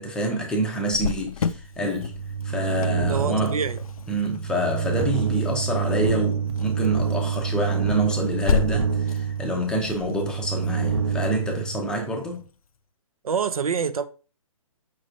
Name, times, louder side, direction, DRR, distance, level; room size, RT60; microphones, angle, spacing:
voice 1, 0.0-2.2 2.4-3.6 4.1-12.4, right 1 dB, 5° left, 0.5 m, -27 dB
Cricket, 0.9-12.4, left 7 dB, 85° left, 0.4 m, -34 dB
sound 1, 1.7-12.3, right 6 dB, 50° right, 0.8 m, -27 dB
voice 2, 3.1-3.8 13.2-14.0, right 6 dB, 85° right, 0.5 m, -26 dB
5.3 x 3.2 x 2.6 m
hypercardioid pair, 150°, 18 cm